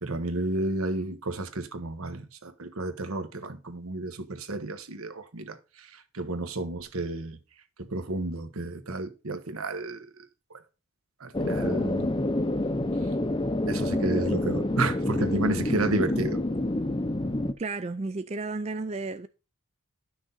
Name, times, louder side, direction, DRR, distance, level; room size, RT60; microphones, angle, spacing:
voice 1, 0.0-7.4 7.8-10.1 10.5-10.6 11.2-12.1 13.7-16.4, right 2 dB, 75° right, 1.3 m, -31 dB
sound 1, 11.3-17.5, left 1 dB, 20° left, 0.6 m, -28 dB
voice 2, 17.6-19.3, right 3 dB, 30° right, 0.4 m, -32 dB
11.5 x 6.3 x 4.0 m
head